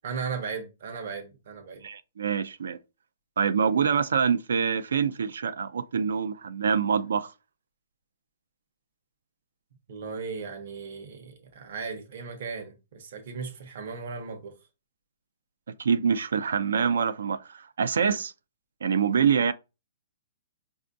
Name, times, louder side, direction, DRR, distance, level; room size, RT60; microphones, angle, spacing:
voice 1, 0.0-1.8 9.9-14.5, right 5 dB, 50° right, 0.8 m, -36 dB
voice 2, 1.8-2.8 3.4-7.3 15.8-18.3 18.8-19.5, right 6 dB, 85° right, 0.4 m, -25 dB
5.2 x 2.4 x 2.5 m
hypercardioid pair, 170°, 0 cm